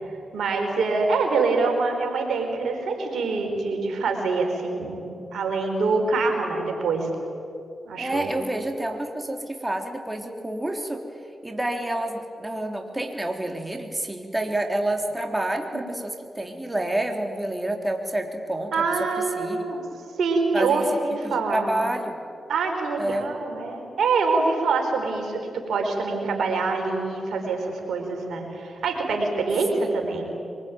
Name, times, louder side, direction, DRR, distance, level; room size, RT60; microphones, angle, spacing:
voice 1, 0.3-7.1 7.8-8.3 18.7-19.8 20.2-21.7 22.5-30.2, right 4 dB, 75° right, 3 dB, 4.5 m, -25 dB
voice 2, 8.0-11.0 11.4-18.7 19.0-20.0 20.5-20.8 21.2-22.1 23.0-23.3 29.8-29.9, right 1 dB, 15° right, 3 dB, 3.6 m, -29 dB
23.5 x 22.0 x 9.4 m, 2.6 s
supercardioid pair, 40°, 0 cm